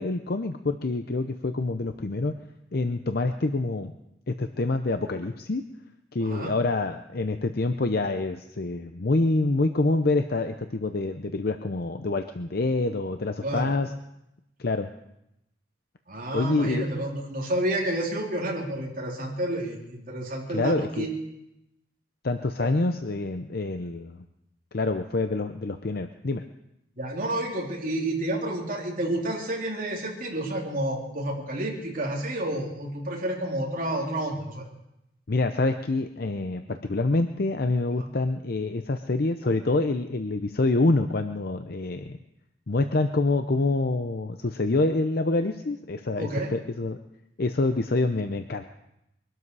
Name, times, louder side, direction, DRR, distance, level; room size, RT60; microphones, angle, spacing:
voice 1, 0.0-2.3 2.7-3.9 4.3-5.6 6.1-13.9 14.6-14.9 16.3-16.8 20.5-21.1 22.2-24.2 24.7-26.4 35.3-42.2 42.7-47.0 47.4-48.6, left 2 dB, 55° left, 7 dB, 0.7 m, -26 dB
voice 2, 6.2-6.5 13.4-13.7 16.1-21.1 22.6-22.7 27.0-34.7 38.0-38.1 46.2-46.5, right 1 dB, 50° right, -2 dB, 3.6 m, -30 dB
23.0 x 12.5 x 4.8 m, 0.85 s
head